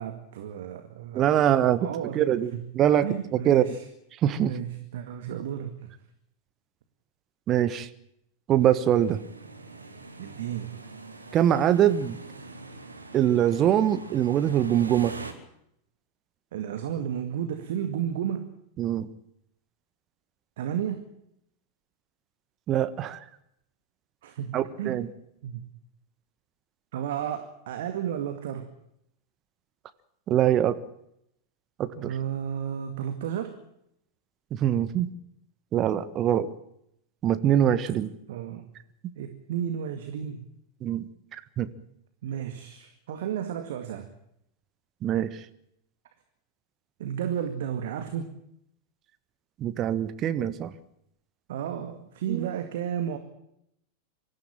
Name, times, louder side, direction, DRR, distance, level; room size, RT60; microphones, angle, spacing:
voice 1, 0.0-2.2 2.5-2.7 3.0-3.8 4.4-5.9 10.2-10.8 16.5-18.5 20.6-21.1 24.2-25.0 25.4-25.7 26.9-28.7 31.9-33.6 38.3-38.7 39.2-40.5 42.2-44.1 47.0-48.3 51.5-53.2, right 9 dB, 55° right, 8 dB, 2.0 m, -33 dB
voice 2, 1.1-1.9 2.1-3.1 3.4-3.7 4.2-4.5 7.5-7.9 8.5-9.2 11.3-12.2 13.1-15.1 18.8-19.1 22.7-23.2 24.5-25.1 30.3-30.8 31.8-32.1 34.5-35.1 35.7-36.5 37.2-38.1 40.8-41.7 45.0-45.4 49.6-50.7 52.3-52.5, right 10 dB, 30° right, 13 dB, 1.4 m, -23 dB
sound 1, 8.6-15.3, right 3 dB, 80° right, 2.7 m, -43 dB
25.0 x 14.5 x 8.9 m, 0.76 s
figure-of-eight pair, 90°, 0 cm